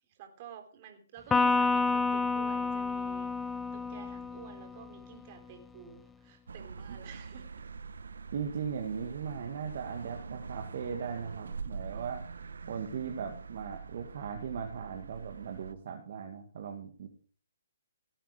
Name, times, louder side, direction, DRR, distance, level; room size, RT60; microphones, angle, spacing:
voice 1, 0.1-7.7 11.9-12.0, right 8 dB, 35° right, 5 dB, 3.6 m, -51 dB
Electric guitar, 1.3-4.8, left 3 dB, 10° left, 0.6 m, -29 dB
sound 1, 6.5-15.7, right 5 dB, 85° right, 1.0 m, -44 dB
voice 2, 8.3-12.2 12.7-17.1, right 7 dB, 55° right, 3 dB, 2.2 m, -38 dB
18.0 x 8.9 x 5.1 m, 0.39 s
hypercardioid pair, 155°, 0 cm